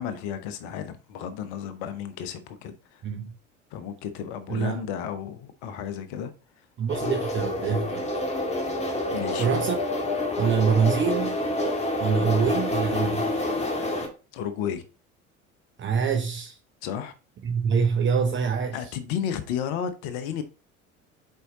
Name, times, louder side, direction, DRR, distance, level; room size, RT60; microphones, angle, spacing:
voice 1, 0.0-3.0 3.7-6.3 9.1-9.6 14.3-14.8 16.8-17.1 18.7-20.4, left 8 dB, 55° left, 1.1 m, -33 dB
voice 2, 3.0-3.3 4.5-4.8 6.8-8.0 9.3-9.8 10.4-11.4 12.0-13.3 15.8-16.6 17.4-18.9, right 6 dB, 30° right, 0.9 m, -25 dB
sound 1, 6.9-14.1, left 1 dB, 15° left, 1.8 m, -28 dB
6.8 x 4.7 x 3.7 m
figure-of-eight pair, 65°, 38 cm